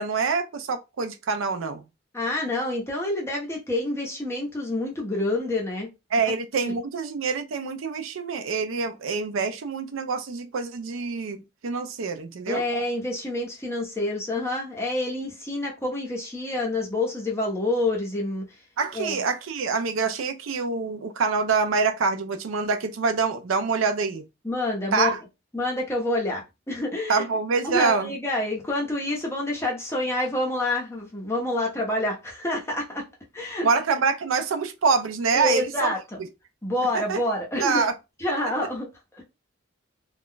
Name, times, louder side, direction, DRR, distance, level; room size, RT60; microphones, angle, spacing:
voice 1, 0.0-1.8 6.1-12.6 18.8-24.2 24.9-25.2 27.1-28.1 33.6-35.9 37.1-37.2 37.6-37.9, right 4 dB, 85° right, 0.5 m, -25 dB
voice 2, 2.1-5.9 6.6-6.8 12.4-18.4 18.9-19.1 24.4-25.2 25.5-27.3 27.6-33.0 33.3-33.7 35.3-36.2 36.6-37.8 38.2-39.2, left 1 dB, 15° left, 0.9 m, -28 dB
2.4 x 2.2 x 3.7 m
head